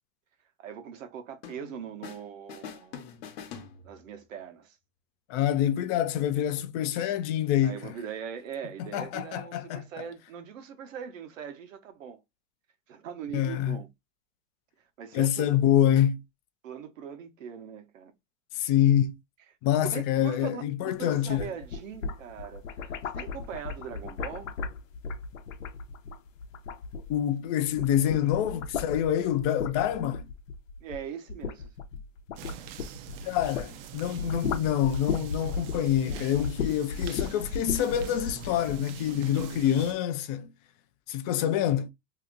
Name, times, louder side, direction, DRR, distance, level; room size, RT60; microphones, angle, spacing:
voice 1, 0.6-3.0 3.8-4.8 7.6-12.2 12.9-13.9 15.0-15.3 16.6-18.1 19.8-24.5 30.8-31.7 39.5-39.9, right 8 dB, 80° right, 1.0 m, -41 dB
sound 1, 1.4-2.2 2.5-4.3, left 7 dB, 55° left, 1.0 m, -44 dB
voice 2, 5.3-7.9 8.9-9.8 13.3-13.8 15.1-16.2 18.5-19.2 19.6-21.5 27.1-30.3 33.2-40.5 41.1-41.9, left 11 dB, 35° left, 0.4 m, -26 dB
sound 2, 21.2-27.4 27.7-33.7 34.0-38.8, left 5 dB, 80° left, 0.8 m, -35 dB
sound 3, 32.4-39.9, right 10 dB, 50° right, 0.5 m, -44 dB
2.8 x 2.5 x 3.7 m
hypercardioid pair, 125°, 38 cm